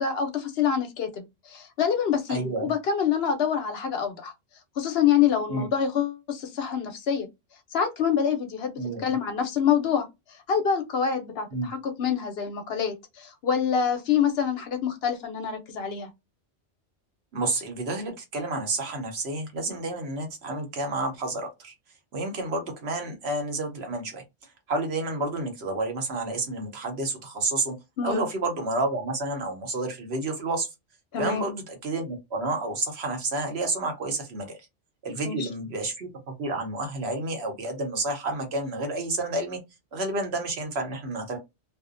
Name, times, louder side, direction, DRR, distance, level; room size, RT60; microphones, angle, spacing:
voice 1, 0.0-4.3 4.8-7.3 7.7-16.1 28.0-28.2 31.1-31.5 35.2-35.5, left 7 dB, 65° left, 0.8 m, -26 dB
voice 2, 2.3-2.7 5.5-5.7 8.8-9.1 11.5-11.7 17.3-21.7 22.1-24.2 24.7-27.8 28.0-30.7 31.2-34.6 35.0-39.6 39.9-41.4, right 2 dB, 65° right, 1.0 m, -30 dB
2.6 x 2.0 x 2.5 m
omnidirectional pair, 1.2 m